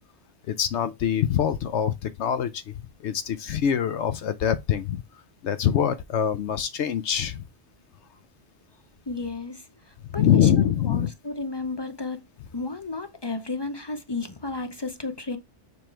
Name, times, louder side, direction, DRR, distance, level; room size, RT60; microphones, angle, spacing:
voice 1, 0.5-2.6 3.0-5.0 5.4-7.4 10.1-11.1, left 9 dB, 75° left, 0.9 m, -24 dB
voice 2, 9.1-12.3 12.5-15.4, left 3 dB, 35° left, 0.4 m, -33 dB
6.9 x 3.1 x 4.4 m
omnidirectional pair, 1.2 m